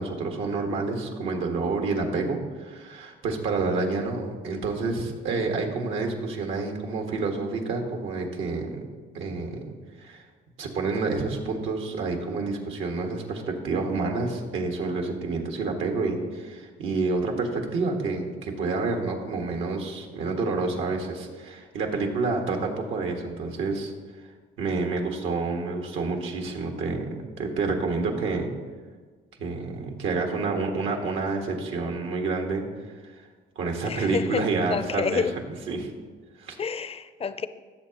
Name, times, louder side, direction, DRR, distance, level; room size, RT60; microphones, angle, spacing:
voice 1, 0.0-8.8 9.1-9.6 10.0-10.2 10.6-23.9 24.6-27.1 27.4-28.5 29.4-32.7 33.5-35.2 35.7-35.9 36.4-36.6, right 3 dB, 85° right, 2 dB, 1.7 m, -28 dB
voice 2, 33.8-35.3 36.6-37.5, left 6 dB, 30° left, 13 dB, 0.5 m, -29 dB
16.5 x 7.1 x 3.0 m, 1.5 s
cardioid pair, 90°, 20 cm